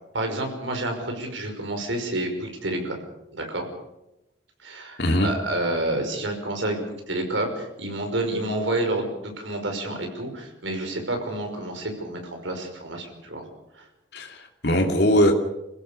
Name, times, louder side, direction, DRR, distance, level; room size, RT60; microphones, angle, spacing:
voice 1, 0.1-3.0 3.3-3.7 4.6-13.5 13.7-13.9, right 1 dB, 85° right, 4 dB, 5.5 m, -29 dB
voice 2, 5.0-5.3 14.1-15.3, equal, 60° left, 2 dB, 2.9 m, -21 dB
27.0 x 15.5 x 7.0 m, 0.91 s
head